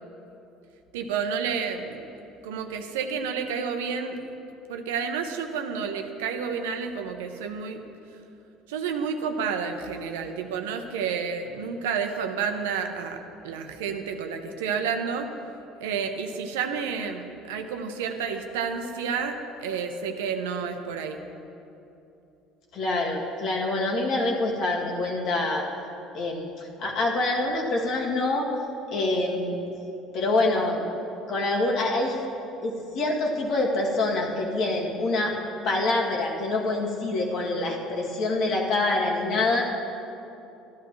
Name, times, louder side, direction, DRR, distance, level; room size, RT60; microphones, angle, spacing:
voice 1, 0.9-2.1 2.4-4.2 4.7-7.8 8.7-15.3 15.8-21.2, right 6 dB, 90° right, 6 dB, 0.7 m, -30 dB
voice 2, 22.7-25.6 26.1-26.5 26.8-28.5 28.9-29.6 30.1-30.8 31.3-32.2 32.6-35.3 35.6-39.6, left 2 dB, 60° left, -1 dB, 1.9 m, -25 dB
13.0 x 11.0 x 3.1 m, 2.8 s
supercardioid pair, 80°, 0 cm